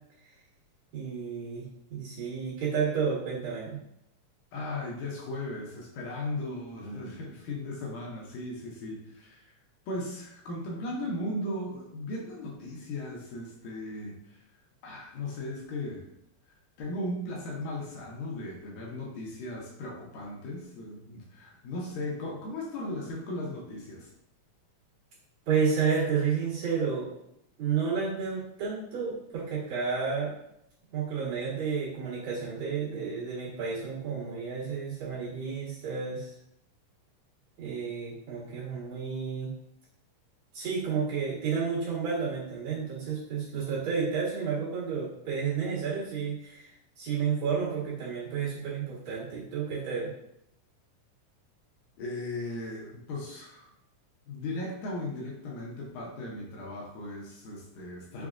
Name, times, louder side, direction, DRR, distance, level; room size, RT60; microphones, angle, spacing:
voice 1, 0.9-1.6 1.9-3.8 25.5-27.2 27.6-30.3 30.9-36.3 37.6-39.5 40.5-50.1, right 6 dB, 65° right, -10 dB, 2.5 m, -31 dB
voice 2, 4.5-9.5 9.9-14.4 14.8-16.0 16.8-24.1 52.0-53.7 54.3-58.3, left 1 dB, 75° left, -3 dB, 2.1 m, -37 dB
5.8 x 2.1 x 2.4 m, 0.78 s
omnidirectional pair, 3.8 m